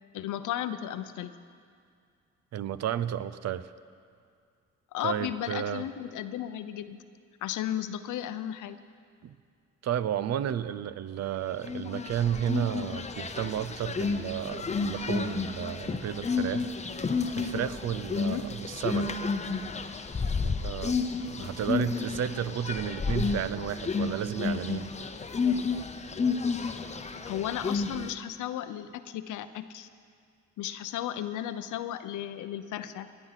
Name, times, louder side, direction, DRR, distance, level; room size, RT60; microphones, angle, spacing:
voice 1, 0.1-1.3 4.9-7.0 7.4-8.8 18.2-18.5 21.4-21.5 27.2-29.9 30.6-33.1, left 11 dB, 80° left, 11 dB, 0.7 m, -34 dB
voice 2, 2.5-3.7 5.0-5.8 9.2-9.3 9.8-16.7 17.4-19.1 20.4-21.0 21.3-24.9, right 10 dB, 60° right, 15 dB, 0.6 m, -32 dB
sound 1, 11.6-28.1, left 4 dB, 25° left, 0.8 m, -31 dB
17.0 x 10.0 x 5.8 m, 2.2 s
cardioid pair, 90°, 30 cm